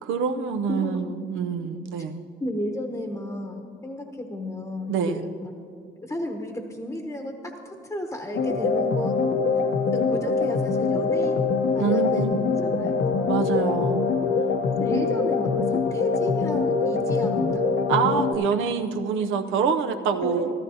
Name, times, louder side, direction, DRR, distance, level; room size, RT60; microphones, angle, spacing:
voice 1, 0.0-2.2 4.9-5.2 11.8-12.9 13.2-14.0 14.9-15.0 17.9-20.5, right 6 dB, 85° right, 8 dB, 0.7 m, -26 dB
voice 2, 2.4-5.5 6.0-9.2 9.9-11.4 11.7-13.3 14.8-17.6 20.2-20.6, left 1 dB, 15° left, 3 dB, 1.0 m, -33 dB
sound 1, 8.3-18.3, left 4 dB, 65° left, 0.9 m, -24 dB
14.0 x 14.0 x 2.8 m, 2.4 s
cardioid pair, 90°, 20 cm